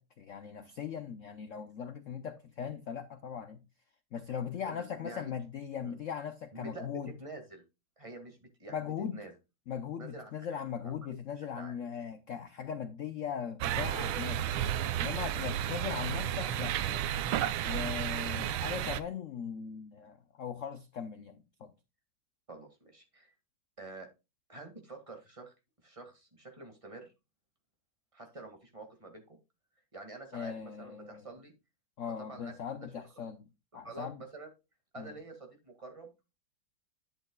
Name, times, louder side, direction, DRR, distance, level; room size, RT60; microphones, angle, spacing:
voice 1, 0.0-3.6 4.1-7.1 8.7-9.2 9.7-14.5 15.0-17.0 17.6-21.7 30.3-31.2 32.0-33.5 33.7-34.2 35.0-35.1, left 7 dB, 80° left, 0.7 m, -39 dB
voice 2, 4.5-5.3 5.8-6.0 6.5-7.6 8.0-9.3 10.0-10.9 11.4-11.8 22.5-23.3 23.8-24.1 24.5-25.5 25.8-27.1 28.1-29.4 29.9-31.5 32.0-32.9 33.7-34.5 34.9-36.1, right 2 dB, 15° right, 1.9 m, -48 dB
sound 1, 13.6-19.0, right 11 dB, 85° right, 1.5 m, -32 dB
11.0 x 8.0 x 2.3 m
omnidirectional pair, 2.2 m